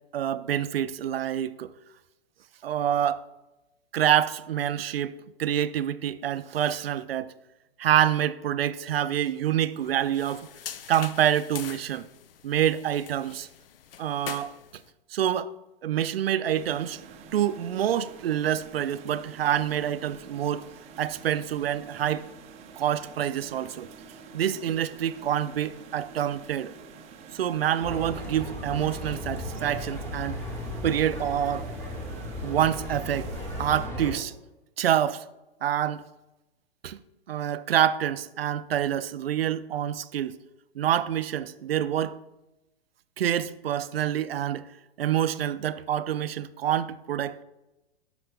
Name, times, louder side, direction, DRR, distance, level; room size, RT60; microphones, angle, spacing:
voice 1, 0.1-1.7 2.6-3.2 3.9-7.3 7.8-10.5 10.9-12.1 12.4-13.5 14.0-14.5 15.1-15.5 15.8-17.0 17.3-20.7 21.0-22.3 22.8-23.9 24.3-26.7 27.3-30.4 30.8-31.7 32.4-33.3 33.6-34.3 34.8-35.2 35.6-36.0 36.8-37.0 37.3-40.4 40.8-42.2 43.2-44.7 45.0-47.4, right 10 dB, 70° right, 0.5 m, -27 dB
sound 1, 9.8-14.9, left 9 dB, 65° left, 0.5 m, -43 dB
sound 2, 16.5-33.9, right 6 dB, 20° right, 0.6 m, -48 dB
sound 3, 27.8-34.2, left 1 dB, 5° left, 1.2 m, -35 dB
13.0 x 5.8 x 2.2 m
figure-of-eight pair, 115°, 31 cm